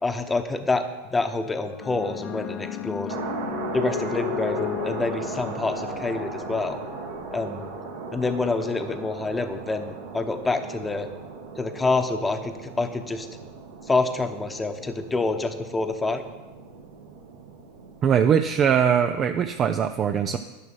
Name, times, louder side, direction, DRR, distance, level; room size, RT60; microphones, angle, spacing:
voice 1, 0.0-3.1 3.7-6.8 7.3-7.7 8.1-11.1 11.5-13.3 13.9-16.2, left 3 dB, 15° left, 7 dB, 1.0 m, -27 dB
sound 1, 1.6-10.2 11.1-11.5, left 10 dB, 45° left, 0.8 m, -36 dB
sound 2, 3.1-19.6, right 5 dB, 70° right, 1.8 m, -38 dB
voice 2, 18.0-20.4, right 8 dB, 35° right, 7 dB, 0.5 m, -21 dB
11.0 x 6.0 x 6.1 m, 1.2 s
hypercardioid pair, 85°, 0 cm